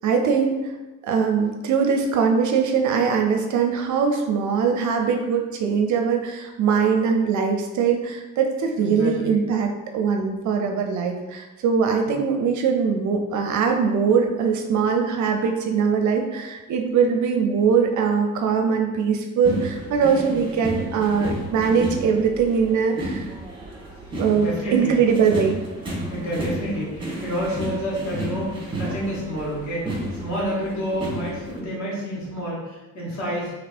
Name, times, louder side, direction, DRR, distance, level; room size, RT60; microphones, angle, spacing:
voice 1, 0.0-0.6 1.0-23.3 24.1-25.6, right 6 dB, 45° right, 3 dB, 0.5 m, -21 dB
voice 2, 8.8-9.4 12.1-12.2 24.3-24.9 26.1-33.5, equal, 40° left, -6 dB, 1.4 m, -29 dB
sound 1, 19.4-31.6, right 1 dB, 10° right, 0.9 m, -32 dB
3.1 x 2.8 x 2.5 m, 1.1 s
figure-of-eight pair, 45°, 41 cm